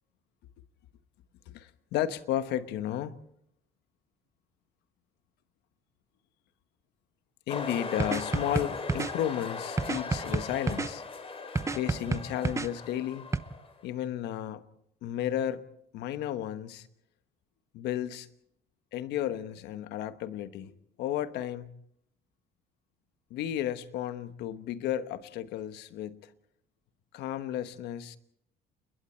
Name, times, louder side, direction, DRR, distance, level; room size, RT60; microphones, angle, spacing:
voice 1, 1.5-3.1 7.5-11.0 11.7-13.3 13.8-14.6 15.0-15.6 15.9-16.9 17.7-18.3 18.9-21.7 23.3-26.3 27.1-28.2, left 11 dB, 85° left, 1.2 m, -33 dB
sound 1, 7.5-13.8, left 4 dB, 35° left, 3.3 m, -39 dB
sound 2, 8.0-9.1 9.8-10.9 11.6-12.7 13.3-13.4, right 4 dB, 15° right, 0.8 m, -29 dB
30.0 x 21.5 x 4.4 m
cardioid pair, 110°, 17 cm